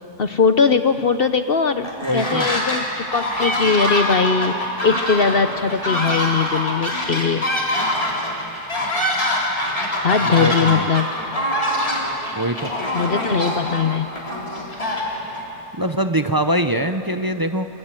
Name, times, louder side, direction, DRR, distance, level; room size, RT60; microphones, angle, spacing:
voice 1, 0.2-7.4 10.0-11.1 12.9-14.1, left 5 dB, 50° left, 9 dB, 0.7 m, -20 dB
sound 1, 1.8-2.8 3.1-15.4, left 1 dB, 20° left, 3.8 m, -24 dB
voice 2, 2.0-2.5 10.2-10.9 12.3-12.7 15.8-17.7, right 1 dB, 30° right, 7 dB, 0.4 m, -23 dB
26.0 x 25.5 x 7.6 m, 2.9 s
omnidirectional pair, 1.7 m